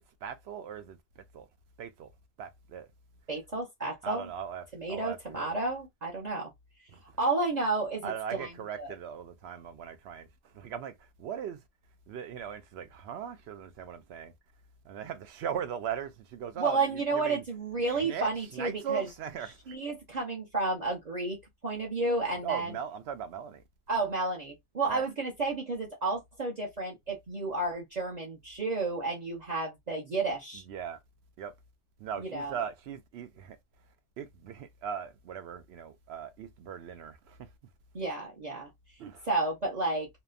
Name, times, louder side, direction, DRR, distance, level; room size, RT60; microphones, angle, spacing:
voice 1, 0.0-1.5 1.8-2.1 2.4-2.9 4.0-5.5 6.9-7.2 8.0-11.6 12.1-14.3 14.8-17.4 17.8-19.8 22.4-23.6 24.9-25.1 30.7-31.0 31.4-31.6 32.0-33.6 34.2-37.5 39.0-39.3, right 8 dB, 80° right, 0.8 m, -39 dB
voice 2, 3.3-4.3 4.7-6.5 7.2-8.5 8.8-8.9 16.6-19.1 19.7-21.4 21.6-22.7 23.9-30.6 32.2-32.5 37.9-38.7 39.3-40.1, right 3 dB, 45° right, 0.9 m, -31 dB
2.8 x 2.1 x 2.4 m
omnidirectional pair, 1.1 m